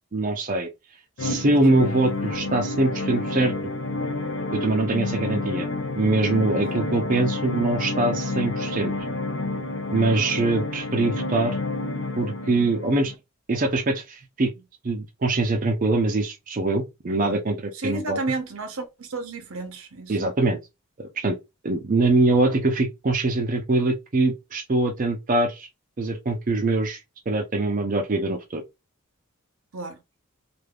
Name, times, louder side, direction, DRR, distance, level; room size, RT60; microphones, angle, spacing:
voice 1, 0.1-0.7 1.2-3.5 4.5-5.7 6.0-8.9 9.9-11.6 12.2-13.1 13.5-14.5 14.8-18.2 20.1-20.6 21.0-21.4 21.6-25.7 26.0-27.0 27.3-28.6, right 2 dB, 40° right, 0.5 m, -23 dB
sound 1, 1.2-13.1, left 2 dB, 65° left, 0.6 m, -29 dB
voice 2, 17.7-20.2 29.7-30.0, right 2 dB, 80° right, 0.8 m, -32 dB
3.3 x 2.5 x 2.3 m
head